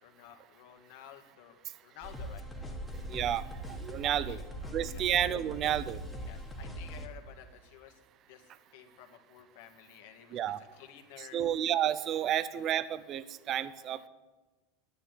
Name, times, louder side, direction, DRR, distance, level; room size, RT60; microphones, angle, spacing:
voice 1, 0.0-2.8 4.0-5.1 6.2-8.0 8.3-11.4, left 10 dB, 65° left, 5 dB, 2.0 m, -53 dB
sound 1, 2.0-7.1, equal, 5° left, 1.7 m, -41 dB
voice 2, 3.1-4.4 4.7-6.0 10.3-10.6 11.2-14.1, right 10 dB, 35° right, 15 dB, 0.7 m, -31 dB
11.0 x 10.0 x 9.3 m, 1.2 s
supercardioid pair, 155°, 0 cm